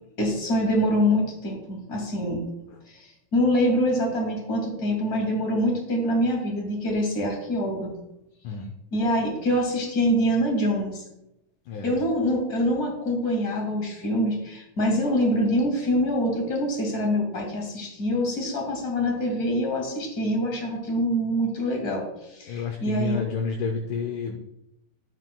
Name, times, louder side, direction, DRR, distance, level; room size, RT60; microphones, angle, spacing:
voice 1, 0.2-2.4 2.9-3.0 3.3-7.9 8.9-11.0 11.8-22.1 22.3-23.2, equal, 30° left, 0 dB, 2.4 m, -25 dB
voice 2, 22.5-24.4, left 6 dB, 75° left, 4 dB, 1.9 m, -30 dB
13.5 x 8.0 x 2.3 m, 0.84 s
omnidirectional pair, 4.3 m